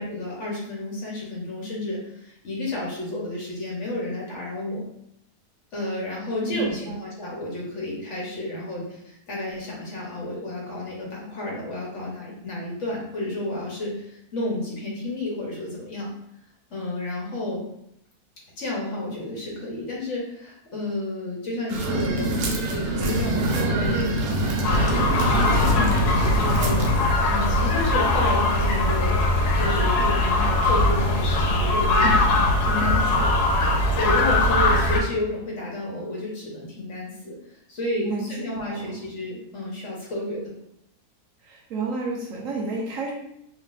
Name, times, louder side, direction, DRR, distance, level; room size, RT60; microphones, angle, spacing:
voice 1, 0.0-4.8 5.7-16.1 16.7-17.6 18.6-25.9 26.3-26.9 27.2-32.1 32.7-33.3 34.0-40.5, left 1 dB, 55° left, -3 dB, 1.1 m, -31 dB
voice 2, 6.4-7.0 25.5-26.1 26.4-26.7 32.0-32.5 32.8-33.1 38.0-38.3 38.6-39.0 41.4-43.1, right 3 dB, 65° right, -2 dB, 1.0 m, -31 dB
sound 1, 21.7-27.1, right 2 dB, 85° right, 1.2 m, -25 dB
sound 2, 24.6-35.0, left 2 dB, 80° left, 1.2 m, -21 dB
3.6 x 3.1 x 2.4 m, 0.77 s
omnidirectional pair, 1.7 m